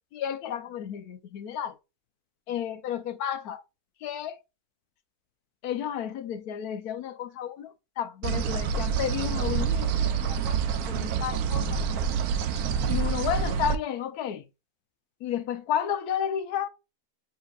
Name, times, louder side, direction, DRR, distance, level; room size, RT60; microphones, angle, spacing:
voice 1, 0.1-1.7 2.5-3.6 4.0-4.4 5.6-7.7 8.0-10.6 10.9-11.7 12.9-14.4 15.2-16.7, left 9 dB, 90° left, 1.1 m, -32 dB
sound 1, 8.2-13.8, right 7 dB, 80° right, 1.1 m, -27 dB
7.3 x 2.9 x 2.3 m
omnidirectional pair, 1.6 m